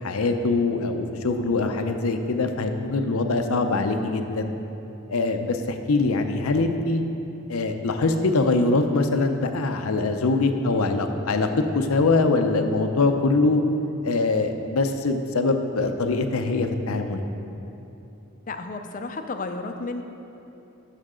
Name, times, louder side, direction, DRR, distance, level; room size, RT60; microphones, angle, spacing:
voice 1, 0.0-4.5 5.1-7.0 7.5-11.5 11.7-13.6 14.0-17.2, left 3 dB, 90° left, 6 dB, 0.6 m, -23 dB
voice 2, 18.5-20.0, left 3 dB, 40° left, 6 dB, 0.5 m, -32 dB
13.0 x 5.8 x 3.7 m, 2.9 s
head